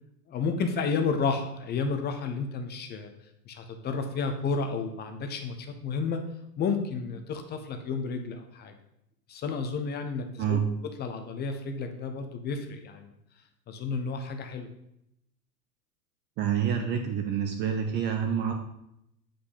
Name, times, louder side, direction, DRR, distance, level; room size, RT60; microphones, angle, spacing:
voice 1, 0.3-3.1 3.5-6.2 6.6-8.7 9.3-10.6 11.0-13.1 13.7-14.7, left 4 dB, 20° left, 6 dB, 0.9 m, -31 dB
voice 2, 10.4-10.7 16.4-18.5, right 8 dB, 20° right, 4 dB, 0.6 m, -27 dB
8.2 x 5.1 x 5.6 m, 0.80 s
figure-of-eight pair, 95°, 49 cm